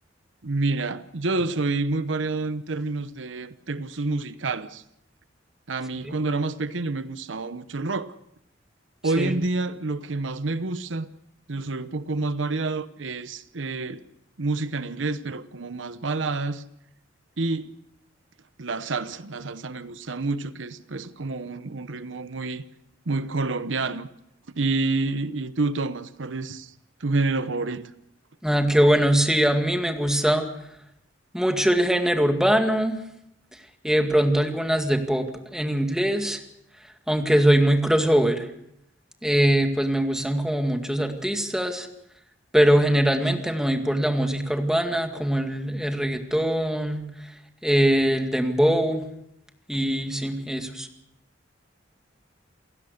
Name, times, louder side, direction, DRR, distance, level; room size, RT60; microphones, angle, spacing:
voice 1, 0.4-4.8 5.7-8.1 9.0-11.1 11.5-14.0 14.4-16.6 17.4-17.7 18.6-22.6 23.1-24.1 24.5-26.7 27.0-27.9, right 3 dB, 80° right, 0.9 m, -28 dB
voice 2, 28.4-30.4 31.3-33.0 33.8-35.3 35.5-36.4 37.1-38.4 39.2-41.9 42.5-47.0 47.6-49.0 49.7-50.9, right 1 dB, 5° right, 2.1 m, -22 dB
28.5 x 16.5 x 6.7 m
head